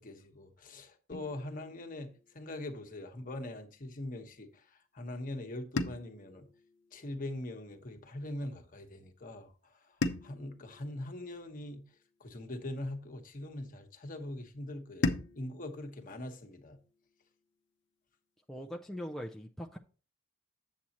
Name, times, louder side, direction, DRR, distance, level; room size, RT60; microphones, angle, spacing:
voice 1, 0.0-6.5 6.9-10.0 10.2-11.8 12.2-16.8, left 1 dB, 40° left, 1.1 m, -42 dB
sound 1, 1.1-3.3 5.8-8.1 10.0-12.5 15.0-17.6, left 2 dB, 55° left, 0.7 m, -40 dB
voice 2, 18.5-19.8, equal, ahead, 0.4 m, -41 dB
8.4 x 7.5 x 2.9 m
head